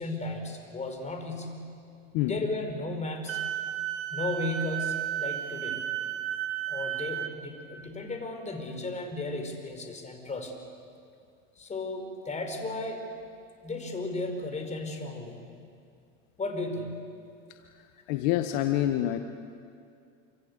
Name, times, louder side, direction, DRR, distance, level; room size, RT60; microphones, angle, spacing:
voice 1, 0.0-1.5 2.2-3.4 4.1-5.8 6.7-10.5 11.6-13.0 13.6-15.4 16.4-17.0, left 2 dB, 20° left, 5 dB, 5.1 m, -34 dB
Wind instrument woodwind instrument, 3.3-7.3, right 12 dB, 35° right, 2.1 m, -33 dB
voice 2, 18.1-19.2, left 13 dB, 55° left, 7 dB, 1.6 m, -26 dB
28.0 x 25.5 x 8.3 m, 2.4 s
hypercardioid pair, 105°, 37 cm